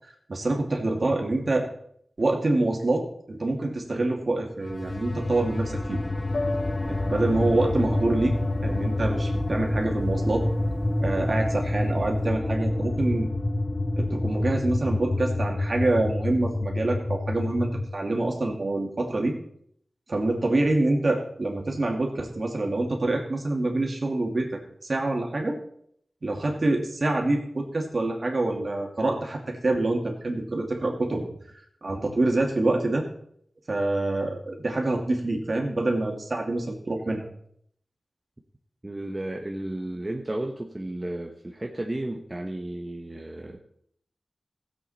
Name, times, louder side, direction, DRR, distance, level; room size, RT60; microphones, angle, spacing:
voice 1, 0.3-1.7 2.2-6.0 6.9-8.4 8.6-10.4 11.0-13.3 14.0-19.3 20.1-25.6 26.2-31.2 31.8-33.1 33.7-37.3, right 2 dB, 55° right, 1 dB, 2.5 m, -26 dB
sound 1, 4.6-17.9, left 1 dB, 35° left, 1.0 m, -28 dB
Piano, 6.3-12.2, left 2 dB, 85° left, 0.9 m, -38 dB
voice 2, 38.8-43.6, right 1 dB, 30° right, 1 dB, 1.2 m, -33 dB
16.0 x 7.9 x 4.3 m, 0.67 s
cardioid pair, 50°, 0 cm